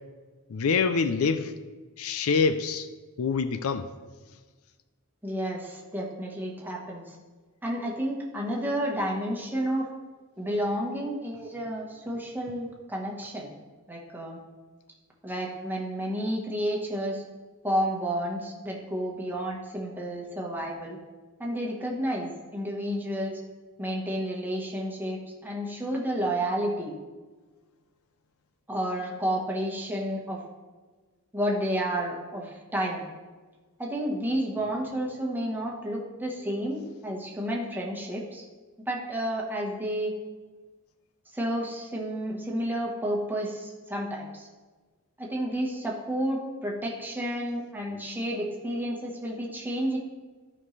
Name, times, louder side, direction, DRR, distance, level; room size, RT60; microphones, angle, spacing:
voice 1, 0.5-1.5 2.0-2.9 3.2-3.9, left 5 dB, 70° left, 11 dB, 0.5 m, -25 dB
voice 2, 5.2-7.2 7.6-9.9 10.4-13.5 13.9-14.4 15.2-17.2 17.6-21.0 21.4-23.4 23.8-26.9 28.7-30.4 31.3-33.0 33.8-38.4 38.9-40.1 41.3-44.5 45.2-50.0, equal, 10° right, -2 dB, 1.3 m, -31 dB
13.0 x 5.4 x 3.3 m, 1.3 s
head